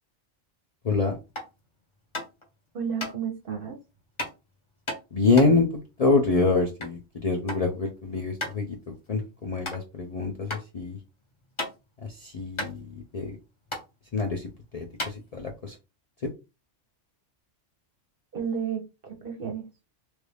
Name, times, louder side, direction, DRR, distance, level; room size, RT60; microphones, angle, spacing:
voice 1, 0.8-1.2 5.1-5.7 6.0-11.0 12.0-13.4 14.1-15.8, left 3 dB, 45° left, 1 dB, 0.5 m, -26 dB
sound 1, 1.3-1.6 2.1-2.5 3.0-3.1 4.2-4.4 4.9-7.0 7.3-7.7 8.0-8.1 8.4-8.6 9.1-9.2 9.6-9.8 10.5-10.6 11.0-12.0 12.3-12.4 12.6-13.4 13.7-13.8 14.5-14.6 14.9-15.7, left 1 dB, 25° left, 1.0 m, -34 dB
voice 2, 2.7-3.8 18.3-19.7, right 7 dB, 55° right, 4 dB, 0.8 m, -32 dB
3.2 x 2.6 x 3.3 m, 0.27 s
omnidirectional pair, 1.2 m